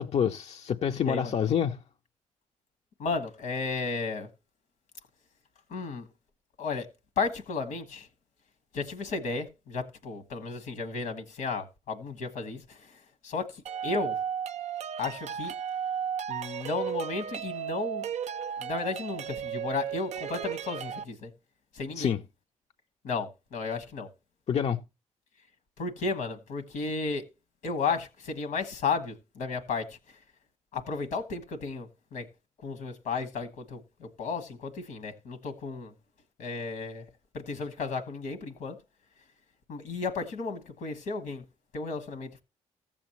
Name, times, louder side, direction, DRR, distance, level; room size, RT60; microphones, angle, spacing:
voice 1, 0.0-1.8 22.0-22.2 24.5-24.8, left 8 dB, 55° left, 0.5 m, -27 dB
voice 2, 3.0-4.3 5.7-6.1 6.6-6.9 7.2-8.1 8.7-12.8 13.2-14.2 15.0-15.5 16.3-18.1 18.6-21.3 21.7-22.1 23.0-24.1 25.8-27.2 27.6-30.0 30.7-32.2 32.6-35.9 36.4-37.0 37.3-38.8 39.7-41.4 41.7-42.4, left 4 dB, 80° left, 1.4 m, -33 dB
sound 1, 13.7-21.0, right 8 dB, 60° right, 0.4 m, -34 dB
15.0 x 7.1 x 3.0 m
supercardioid pair, 55°, 13 cm